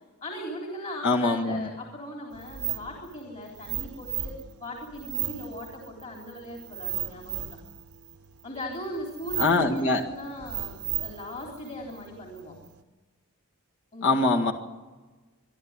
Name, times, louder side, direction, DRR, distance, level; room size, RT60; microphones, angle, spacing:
voice 1, 0.2-7.6 8.4-12.6 13.9-14.2, left 1 dB, 35° left, 0 dB, 3.7 m, -39 dB
voice 2, 1.0-1.7 9.4-10.0 14.0-14.5, left 3 dB, 55° left, 1 dB, 2.0 m, -23 dB
sound 1, 2.3-12.8, right 12 dB, 75° right, 1.1 m, -36 dB
26.0 x 11.5 x 9.8 m, 1.3 s
head